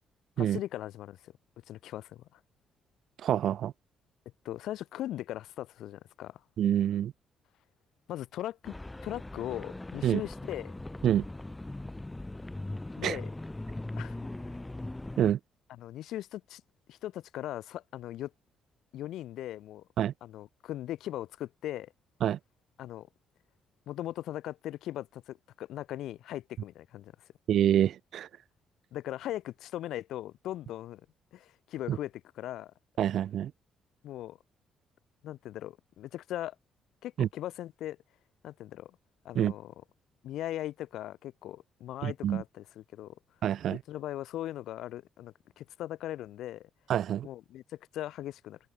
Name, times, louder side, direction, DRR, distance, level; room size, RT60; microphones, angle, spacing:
voice 1, 0.4-1.3 1.7-2.4 4.4-6.4 8.1-8.7 9.0-10.7 13.0-13.3 14.0-14.2 14.5-14.6 15.8-16.6 16.9-18.3 18.9-19.8 20.2-21.9 22.8-23.1 23.9-27.1 28.9-31.0 31.3-32.7 34.0-34.4 35.2-36.6 37.0-38.0 38.4-39.0 39.2-39.7 40.2-43.1 43.7-46.7 47.2-48.6, left 13 dB, 80° left, 7.6 m, -39 dB
voice 2, 3.2-3.7 6.6-7.1 10.0-10.2 11.0-11.3 13.0-13.2 15.2-15.4 20.0-20.1 22.2-22.4 27.5-28.3 31.9-32.0 33.0-33.5 37.2-37.3 39.4-39.5 42.0-42.4 43.4-43.8 46.9-47.3, right 10 dB, 70° right, 1.9 m, -27 dB
sound 1, 8.6-15.3, left 2 dB, 15° left, 5.8 m, -40 dB
cardioid pair, 90°, 0 cm